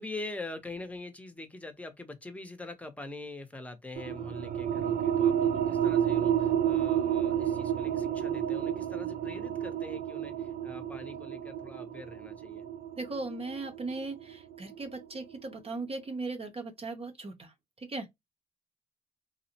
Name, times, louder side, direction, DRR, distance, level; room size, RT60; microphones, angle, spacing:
voice 1, 0.0-12.7, left 2 dB, 10° left, 0.7 m, -44 dB
sound 1, 4.0-15.2, right 9 dB, 65° right, 0.4 m, -30 dB
voice 2, 13.0-18.1, right 3 dB, 35° right, 0.7 m, -38 dB
2.6 x 2.0 x 2.7 m
supercardioid pair, 55°, 17 cm